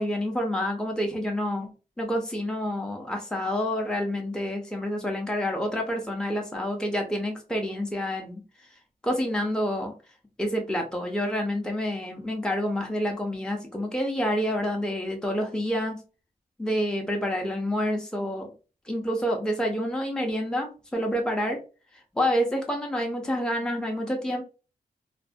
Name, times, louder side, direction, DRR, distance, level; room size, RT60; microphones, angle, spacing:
voice 1, 0.0-1.7 2.0-8.4 9.0-9.9 10.4-16.0 16.6-18.5 18.9-21.6 22.1-24.4, equal, 5° left, 1 dB, 0.6 m, -28 dB
2.5 x 2.1 x 2.4 m, 0.33 s
cardioid pair, 60°, 16 cm